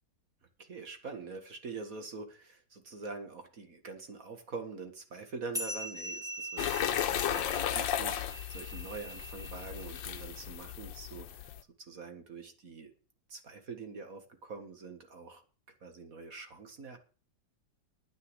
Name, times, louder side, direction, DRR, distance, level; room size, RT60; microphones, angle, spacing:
voice 1, 0.6-11.5 11.8-12.9 13.3-15.4 15.8-17.0, right 4 dB, 45° right, 7 dB, 2.1 m, -45 dB
sound 1, 5.5-10.4, equal, ahead, 1.8 m, -42 dB
sound 2, 6.6-11.6, left 10 dB, 75° left, 1.6 m, -35 dB
9.7 x 9.6 x 8.0 m, 0.37 s
omnidirectional pair, 2.1 m